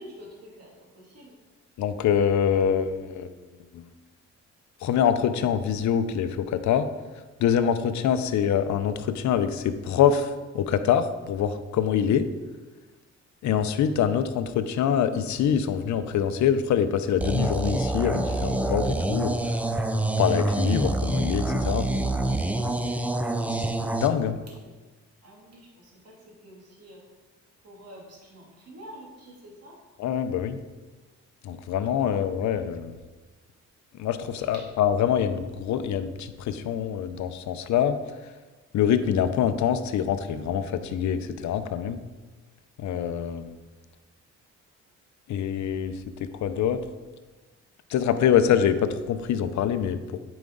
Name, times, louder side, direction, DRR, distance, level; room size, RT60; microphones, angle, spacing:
voice 1, 0.0-1.3 23.2-23.9 24.6-24.7 25.2-27.0 27.6-29.8 32.0-32.2, equal, 55° right, -3 dB, 2.7 m, -47 dB
voice 2, 1.8-3.3 3.7-3.9 4.8-6.9 7.4-12.3 13.4-19.4 20.2-21.9 23.5-23.7 24.0-24.4 30.0-30.6 31.4-32.9 33.9-38.0 38.7-42.0 42.8-43.6 45.3-46.8 47.9-50.2, left 8 dB, 70° left, 11 dB, 0.7 m, -25 dB
sound 1, 17.2-24.1, right 2 dB, 5° right, 0.4 m, -26 dB
9.3 x 5.1 x 3.9 m, 1.3 s
cardioid pair, 90°, 30 cm